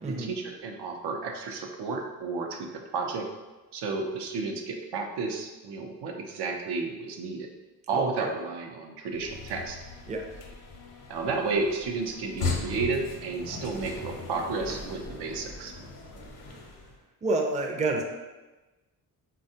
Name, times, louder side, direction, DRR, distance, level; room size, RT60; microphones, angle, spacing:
voice 1, 0.0-3.3 3.7-7.5 7.9-9.8 11.1-15.7, right 4 dB, 80° right, 3 dB, 0.5 m, -32 dB
voice 2, 7.9-8.3 10.1-10.3 17.2-18.0, right 2 dB, 20° right, 1 dB, 0.4 m, -28 dB
sound 1, 9.1-17.0, left 3 dB, 65° left, 0.7 m, -38 dB
3.5 x 2.2 x 2.7 m, 1.2 s
cardioid pair, 70°, 40 cm